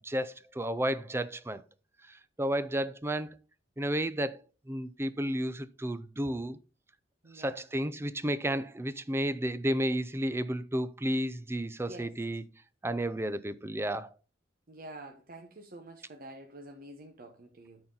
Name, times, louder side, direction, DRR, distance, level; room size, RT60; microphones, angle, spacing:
voice 1, 0.0-1.6 2.1-3.4 3.8-4.4 4.7-6.6 7.3-12.4 12.8-14.1, right 1 dB, 15° right, 0.5 m, -32 dB
voice 2, 7.2-7.6 11.9-12.1 14.7-17.8, right 1 dB, 50° right, 1.0 m, -48 dB
12.5 x 4.4 x 3.9 m
head